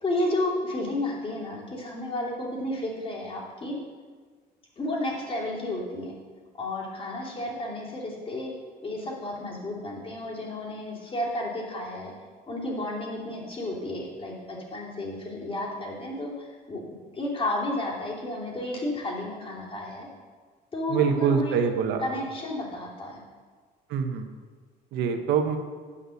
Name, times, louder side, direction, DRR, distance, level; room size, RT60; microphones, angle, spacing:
voice 1, 0.0-3.8 4.8-6.1 6.6-8.5 8.8-12.1 12.5-16.8 17.1-20.1 20.7-21.6 22.0-23.2, left 1 dB, 30° left, -3 dB, 2.8 m, -32 dB
voice 2, 20.9-22.0 23.9-24.3 24.9-25.6, right 7 dB, 80° right, 6 dB, 1.1 m, -24 dB
9.7 x 5.4 x 6.4 m, 1.5 s
cardioid pair, 110°, 17 cm